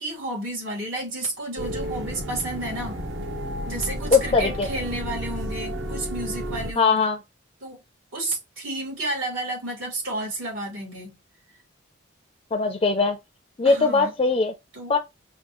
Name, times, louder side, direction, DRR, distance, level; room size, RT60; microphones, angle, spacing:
voice 1, 0.0-3.0 3.7-7.0 7.6-7.8 8.1-11.1 13.6-14.1 14.7-15.0, right 1 dB, 85° right, 2.8 m, -31 dB
sound 1, 1.6-6.7, equal, 65° right, 0.9 m, -32 dB
voice 2, 4.1-4.7 6.8-7.2 12.5-13.2 13.6-14.5 14.9-15.0, left 4 dB, 30° left, 0.4 m, -20 dB
5.8 x 2.3 x 2.9 m
head